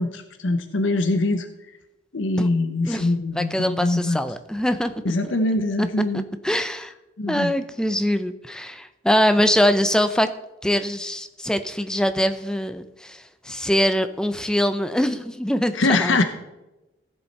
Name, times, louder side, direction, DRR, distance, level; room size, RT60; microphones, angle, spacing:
voice 1, 0.0-1.5 2.1-4.2 5.0-6.2 7.2-7.5 15.7-16.2, left 2 dB, 80° left, 8 dB, 0.8 m, -23 dB
voice 2, 3.3-4.9 5.2-5.3 5.8-5.9 6.1-6.9 7.3-10.3 10.6-16.2, equal, 5° left, 10 dB, 0.5 m, -23 dB
15.5 x 7.2 x 4.2 m, 1.0 s
head